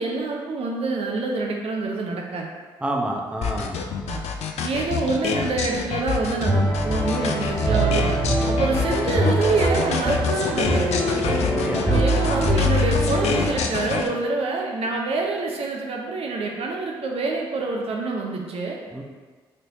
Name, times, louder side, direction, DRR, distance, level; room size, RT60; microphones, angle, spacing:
voice 1, 0.0-2.5 4.1-4.2 4.6-8.1 8.4-11.0 11.9-18.8, right 3 dB, 55° right, 0 dB, 0.6 m, -26 dB
voice 2, 2.8-3.8 11.4-11.9 18.9-19.0, right 1 dB, 10° right, 0 dB, 0.7 m, -28 dB
sound 1, 3.4-14.1, left 6 dB, 65° left, 0.4 m, -27 dB
sound 2, 6.4-13.6, right 1 dB, 25° left, 1.4 m, -23 dB
4.2 x 3.2 x 2.6 m, 1.4 s
hypercardioid pair, 45°, 12 cm